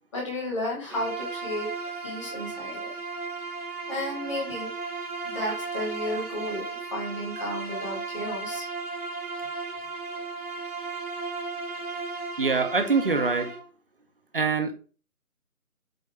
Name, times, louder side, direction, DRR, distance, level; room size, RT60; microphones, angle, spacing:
voice 1, 0.1-1.7 2.0-2.9 3.4-3.6 3.9-4.7 5.2-6.6 6.9-8.6, left 1 dB, 20° left, -2 dB, 1.6 m, -33 dB
Bowed string instrument, 0.9-13.7, right 4 dB, 75° right, 1.8 m, -35 dB
voice 2, 12.4-13.5 14.3-14.7, right 4 dB, 35° right, 7 dB, 0.8 m, -24 dB
8.5 x 2.9 x 4.3 m, 0.38 s
figure-of-eight pair, 160°, 45 cm